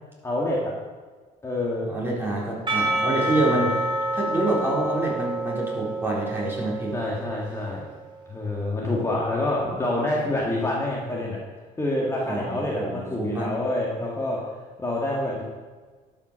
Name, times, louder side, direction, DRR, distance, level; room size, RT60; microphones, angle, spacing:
voice 1, 0.2-0.7 1.4-1.9 3.1-3.7 6.9-7.8 8.3-11.4 11.8-14.4 14.8-15.4, left 1 dB, 15° left, -3 dB, 1.8 m, -27 dB
voice 2, 1.9-3.9 4.1-7.0 12.2-13.5, right 1 dB, 15° right, -5 dB, 3.8 m, -27 dB
Percussion / Church bell, 2.7-7.9, right 2 dB, 30° right, 2.7 m, -28 dB
12.0 x 5.9 x 6.3 m, 1.4 s
cardioid pair, 110°, 17 cm